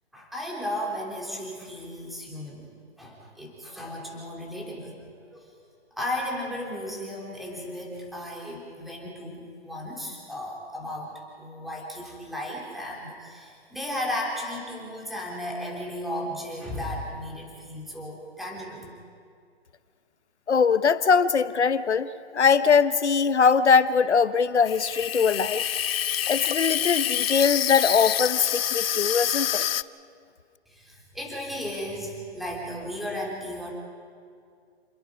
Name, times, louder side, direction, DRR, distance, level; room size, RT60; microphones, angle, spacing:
voice 1, 0.1-2.7 3.0-5.5 5.9-18.9 30.7-33.7, left 1 dB, ahead, -2 dB, 3.2 m, -35 dB
voice 2, 20.5-25.7 26.3-29.6, left 6 dB, 90° left, 14 dB, 1.1 m, -21 dB
Water tap faucet / Sink (filling or washing), 24.6-29.8, left 10 dB, 60° left, 0.6 m, -27 dB
29.0 x 21.5 x 5.1 m, 2.2 s
hypercardioid pair, 140°, 33 cm